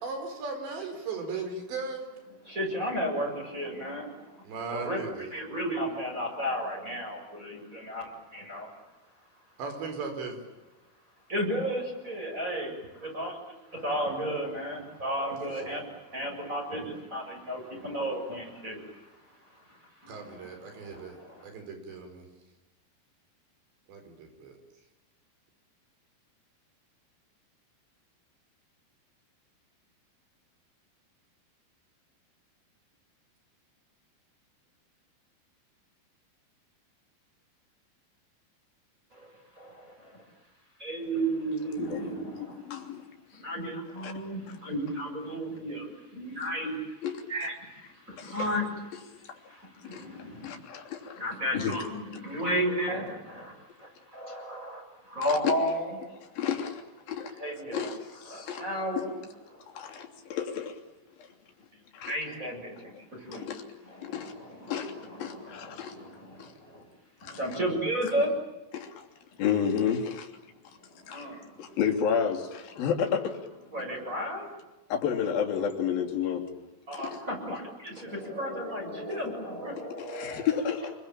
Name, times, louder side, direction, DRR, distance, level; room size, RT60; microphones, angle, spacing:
voice 1, 0.0-2.1 4.4-5.3 9.6-10.4 15.6-15.8 20.1-21.2 21.4-22.3 23.9-24.6, right 4 dB, 90° right, 6 dB, 7.1 m, -37 dB
voice 2, 2.5-4.1 4.7-8.7 11.3-13.3 13.8-15.8 16.1-18.8 20.0-20.2 21.2-21.3 39.6-39.7 40.8-42.6 43.4-45.8 46.1-46.8 47.3-47.5 48.1-48.7 49.8-50.4 51.2-53.5 54.1-54.8 55.1-56.0 57.4-57.9 58.3-59.1 62.1-62.9 63.3-63.5 63.9-66.4 66.7-66.8 67.2-68.3 71.1-71.4 73.7-74.4 76.9-80.6, equal, 15° right, 0 dB, 7.5 m, -33 dB
voice 3, 42.6-43.0 43.3-43.4 44.0-44.1 44.5-44.6 47.0-47.1 48.2-48.4 49.3-49.4 49.8-51.2 51.5-51.8 55.2-55.5 56.3-56.8 57.1-57.3 57.7-58.6 59.0-59.1 59.7-60.8 61.2-61.3 61.9-62.1 63.3-63.6 64.0-64.3 64.7-64.9 65.2-66.0 66.4-66.5 67.2-67.4 68.7-69.0 69.4-70.3 71.1-71.3 71.6-73.4 74.9-76.4 76.9-77.2 80.0-80.9, left 8 dB, 60° left, 3 dB, 4.7 m, -31 dB
28.5 x 22.5 x 9.0 m, 1.1 s
omnidirectional pair, 4.9 m